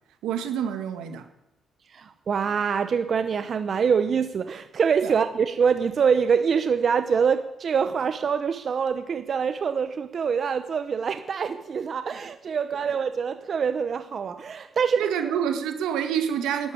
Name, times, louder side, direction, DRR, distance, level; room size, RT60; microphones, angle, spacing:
voice 1, 0.2-1.3 5.0-5.1 15.0-16.7, right 8 dB, 90° right, 1.9 m, -27 dB
voice 2, 1.9-15.0, right 6 dB, 50° right, 0.9 m, -25 dB
12.0 x 11.0 x 8.8 m
cardioid pair, 90°, 0 cm